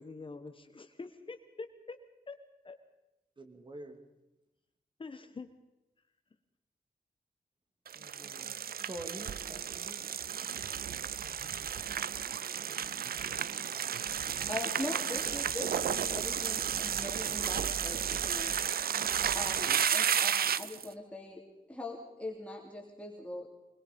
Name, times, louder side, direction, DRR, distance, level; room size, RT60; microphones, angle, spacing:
voice 1, 0.0-2.0 2.3-2.4 2.6-2.8 5.0-5.5, left 4 dB, 35° left, 8 dB, 1.4 m, -45 dB
voice 2, 3.4-4.0 7.9-8.6 8.8-10.0 13.2-13.5, right 1 dB, 30° right, 6 dB, 2.6 m, -47 dB
sound 1, 7.9-20.9, right 8 dB, 80° right, 0.7 m, -33 dB
voice 3, 14.5-18.5 19.3-21.4 21.7-23.5, left 2 dB, 10° left, -2 dB, 3.3 m, -41 dB
24.5 x 21.5 x 5.4 m, 0.97 s
wide cardioid pair, 160°, 15 cm